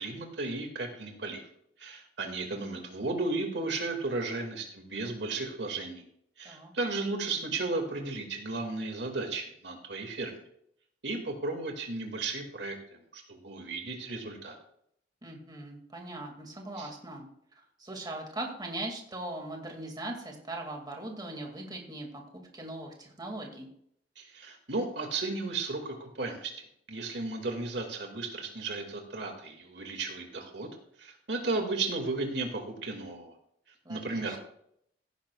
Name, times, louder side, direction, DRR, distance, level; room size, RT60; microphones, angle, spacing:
voice 1, 0.0-1.4 1.8-6.0 6.4-10.4 11.0-14.5 16.8-16.9 24.2-30.7 31.0-33.3 33.9-34.4, right 3 dB, 70° right, 3 dB, 2.2 m, -34 dB
voice 2, 15.2-17.3 17.6-22.2 22.5-23.7 33.8-34.4, right 2 dB, 25° right, 1 dB, 2.3 m, -40 dB
16.5 x 10.5 x 2.4 m, 0.70 s
head